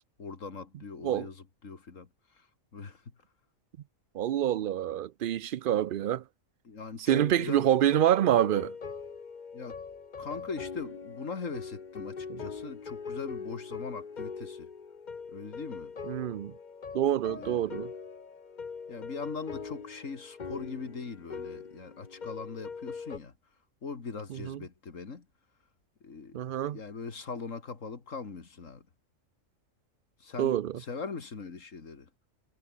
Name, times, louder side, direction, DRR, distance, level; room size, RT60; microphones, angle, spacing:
voice 1, 0.2-2.1 2.4-2.5 2.7-3.0 6.6-7.7 9.5-9.8 10.2-14.7 15.3-15.9 17.3-17.7 18.9-23.3 23.8-25.3 26.0-26.4 26.7-28.9 30.2-32.1, left 4 dB, 70° left, 2.5 m, -41 dB
voice 2, 4.1-6.2 7.1-8.7 12.3-12.4 16.1-16.5 16.9-17.9 24.3-24.6 26.3-26.8 30.4-30.7, right 11 dB, 70° right, 0.5 m, -27 dB
sound 1, 7.1-23.2, left 5 dB, 35° left, 1.2 m, -42 dB
omnidirectional pair, 1.4 m